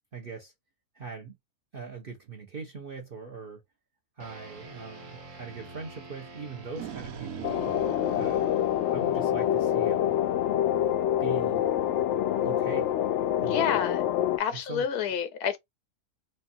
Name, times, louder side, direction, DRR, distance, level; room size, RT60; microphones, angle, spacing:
voice 1, 0.1-0.5 0.9-1.4 1.7-3.6 4.2-7.5 8.1-8.5 8.9-10.1 11.2-11.6 12.4-12.9 13.4-13.8 14.5-14.9, right 5 dB, 45° right, 1.0 m, -41 dB
sound 1, 4.2-13.8, right 3 dB, 60° right, 1.4 m, -48 dB
sound 2, 6.4-9.7, right 10 dB, 80° right, 1.1 m, -41 dB
sound 3, 7.4-14.4, left 11 dB, 65° left, 0.7 m, -26 dB
voice 2, 13.5-14.0 14.4-15.6, left 8 dB, 85° left, 1.2 m, -29 dB
4.4 x 2.4 x 2.6 m
omnidirectional pair, 1.6 m